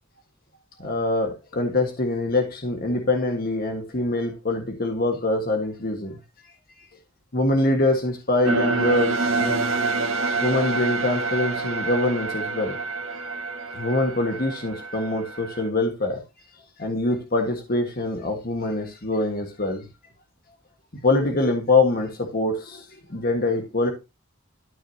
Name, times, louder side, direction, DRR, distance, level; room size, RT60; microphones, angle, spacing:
voice 1, 0.8-6.2 7.3-9.7 10.4-12.8 13.7-16.2 16.8-19.8 20.9-23.9, left 2 dB, 45° left, 1.6 m, -24 dB
sound 1, 8.4-15.7, right 3 dB, 70° right, 1.7 m, -27 dB
12.5 x 6.3 x 2.8 m
head